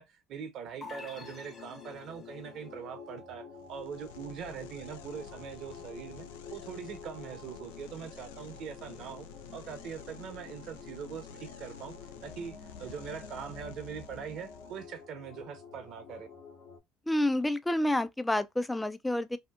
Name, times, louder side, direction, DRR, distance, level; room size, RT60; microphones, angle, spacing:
voice 1, 0.0-11.9 12.2-16.3, right 7 dB, 55° right, 0.8 m, -42 dB
sound 1, 0.8-16.8, left 5 dB, 65° left, 1.2 m, -49 dB
sound 2, 0.8-2.4, left 3 dB, 30° left, 1.0 m, -48 dB
sound 3, 3.6-15.0, left 6 dB, 85° left, 0.4 m, -51 dB
voice 2, 17.1-19.4, left 1 dB, 10° left, 0.4 m, -29 dB
2.8 x 2.4 x 2.3 m
hypercardioid pair, 80°, 0 cm